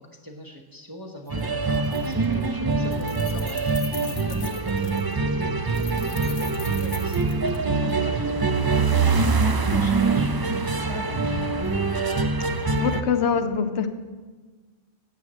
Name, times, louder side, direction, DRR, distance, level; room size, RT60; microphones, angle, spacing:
voice 1, 0.2-12.2 12.8-13.0, equal, 20° right, 1 dB, 0.9 m, -39 dB
Keys jangling, 1.3-1.4 1.7-2.5 2.7-5.1 5.7-7.9, left 6 dB, 85° left, 1.4 m, -41 dB
sound 1, 1.3-13.0, right 4 dB, 40° right, 0.3 m, -24 dB
voice 2, 12.5-13.9, left 6 dB, 70° left, 8 dB, 1.1 m, -24 dB
9.3 x 7.9 x 7.4 m, 1.4 s
omnidirectional pair, 1.3 m